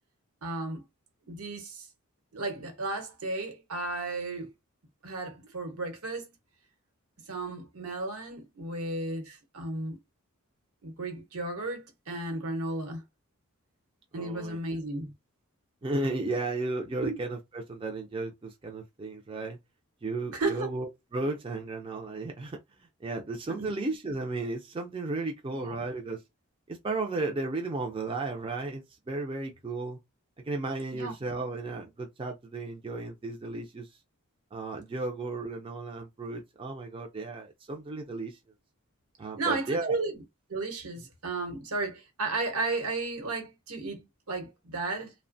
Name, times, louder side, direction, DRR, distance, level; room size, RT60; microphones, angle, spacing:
voice 1, 0.4-0.8 1.3-1.9 2.3-4.5 5.0-6.3 7.2-10.0 10.8-13.0 14.1-15.1 17.0-17.2 20.3-20.7 23.6-23.7 25.5-25.8 30.9-31.1 39.4-40.2 40.5-45.1, right 3 dB, 80° right, 1.0 m, -34 dB
voice 2, 14.1-14.6 15.8-19.6 20.0-26.2 26.7-30.0 30.4-34.0 34.5-38.4 39.2-40.0, right 2 dB, 25° right, 0.4 m, -34 dB
2.9 x 2.1 x 2.5 m
head